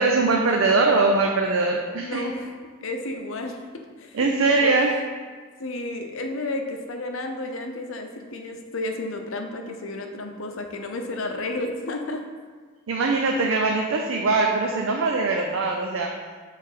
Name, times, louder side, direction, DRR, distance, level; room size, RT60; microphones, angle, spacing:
voice 1, 0.0-2.2 4.1-4.9 12.9-16.1, right 3 dB, 70° right, 1 dB, 0.5 m, -22 dB
voice 2, 2.0-2.5 2.8-4.7 5.6-12.2, left 2 dB, 70° left, 4 dB, 0.7 m, -32 dB
6.6 x 3.3 x 5.0 m, 1.5 s
head